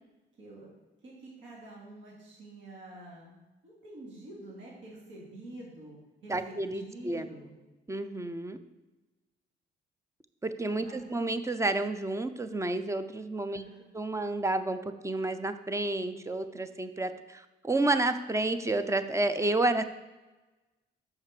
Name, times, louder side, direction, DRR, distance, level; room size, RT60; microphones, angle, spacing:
voice 1, 0.4-0.7 1.0-7.5 10.7-11.0 13.4-13.8, right 2 dB, 70° right, -4 dB, 2.7 m, -48 dB
voice 2, 6.3-7.3 7.9-8.6 10.4-13.6 13.9-19.8, right 2 dB, 15° right, 10 dB, 0.6 m, -30 dB
5.8 x 5.6 x 6.7 m, 1.1 s
cardioid pair, 90°, 20 cm